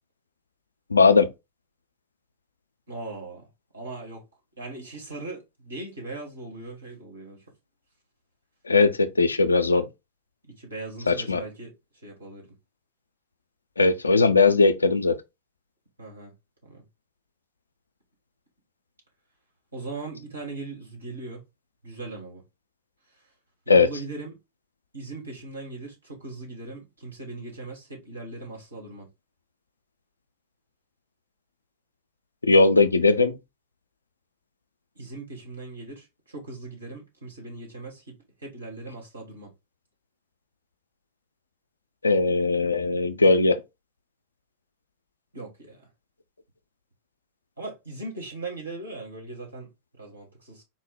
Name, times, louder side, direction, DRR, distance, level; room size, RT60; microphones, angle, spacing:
voice 1, 0.9-1.3 8.7-9.9 11.1-11.4 13.8-15.1 23.7-23.9 32.5-33.3 42.0-43.6, left 3 dB, 80° left, 0.4 m, -19 dB
voice 2, 2.9-3.5 3.7-4.2 4.6-7.4 10.5-11.7 12.0-12.5 16.0-16.3 16.6-16.8 19.7-21.4 21.8-22.4 23.6-24.3 24.9-29.1 34.9-39.5 45.3-45.8 47.6-49.7 49.9-50.6, right 2 dB, 75° right, 1.7 m, -39 dB
4.2 x 2.1 x 3.9 m
figure-of-eight pair, 90°, 0 cm